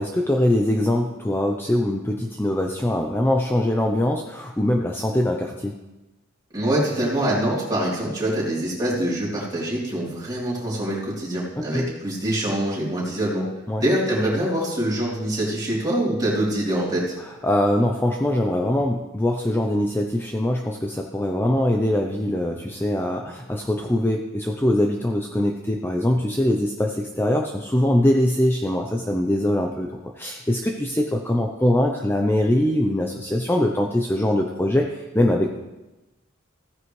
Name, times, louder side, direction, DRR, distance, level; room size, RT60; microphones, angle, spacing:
voice 1, 0.0-5.8 11.6-11.9 13.7-13.8 17.4-35.6, left 1 dB, 10° left, 2 dB, 0.6 m, -22 dB
voice 2, 6.5-13.5 13.8-17.1, right 1 dB, 20° right, -6 dB, 3.4 m, -24 dB
15.5 x 9.6 x 3.2 m, 1.1 s
head